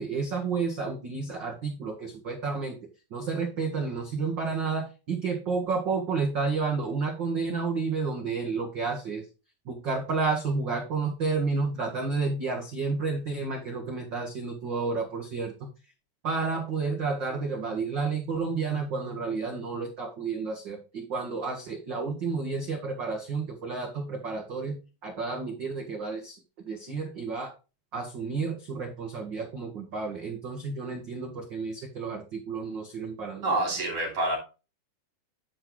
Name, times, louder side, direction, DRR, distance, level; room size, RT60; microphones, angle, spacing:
voice 1, 0.0-2.8 3.1-9.2 9.6-15.5 16.2-24.8 25.0-26.4 26.6-27.5 27.9-33.6, right 4 dB, 90° right, 1 dB, 1.0 m, -31 dB
voice 2, 33.4-34.4, right 2 dB, 40° right, 0 dB, 3.7 m, -27 dB
9.9 x 4.6 x 3.9 m, 0.31 s
omnidirectional pair, 4.3 m